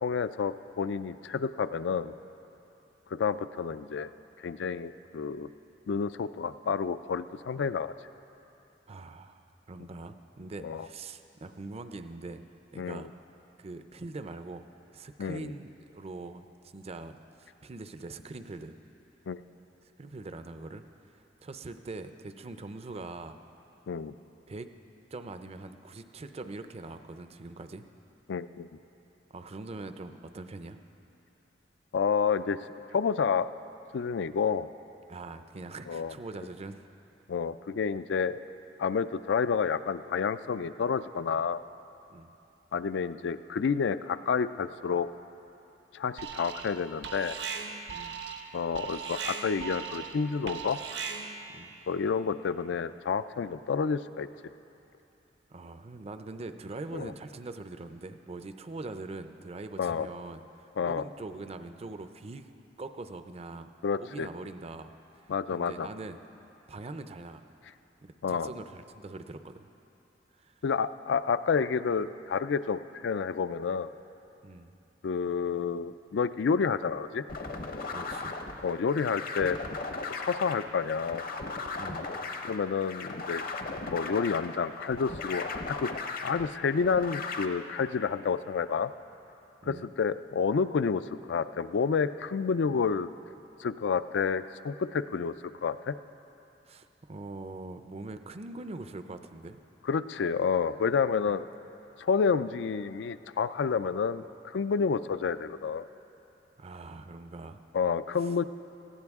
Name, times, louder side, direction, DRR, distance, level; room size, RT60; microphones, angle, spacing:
voice 1, 0.0-2.1 3.1-4.1 4.4-5.5 5.9-7.9 10.6-10.9 12.8-13.1 15.2-15.5 19.3-19.4 23.9-24.1 28.3-28.7 31.9-33.5 33.9-34.7 35.9-36.1 37.3-38.4 38.8-41.6 42.7-45.1 45.9-47.4 48.5-50.8 51.9-54.3 56.9-57.1 59.8-60.1 60.8-61.0 63.8-64.3 65.3-65.9 68.2-68.5 70.6-73.9 75.0-77.2 78.6-79.6 80.1-81.2 82.4-83.4 83.8-85.9 86.2-88.9 89.7-93.1 93.6-95.3 95.6-95.9 99.9-101.5 102.0-105.8 107.7-108.4, left 6 dB, 70° left, 14 dB, 0.4 m, -29 dB
voice 2, 8.9-12.5 12.7-13.1 13.6-14.6 14.9-16.5 16.7-18.7 20.0-20.8 21.1-23.4 24.5-24.7 25.1-27.9 29.3-30.8 35.1-36.8 42.1-42.3 47.9-48.2 51.5-51.7 55.5-62.5 62.8-63.7 64.0-64.9 65.5-66.2 66.7-67.4 68.0-69.7 70.4-70.6 74.4-74.7 77.9-78.3 81.8-82.1 89.6-89.9 96.7-99.6 101.3-101.4 106.6-107.6, right 2 dB, 35° right, 9 dB, 0.5 m, -42 dB
Alarm, 46.2-46.8 47.0-51.5, right 6 dB, 70° right, 0.9 m, -38 dB
sound 1, 77.3-87.5, left 3 dB, 55° left, 0.8 m, -37 dB
18.5 x 15.5 x 3.6 m, 2.9 s
head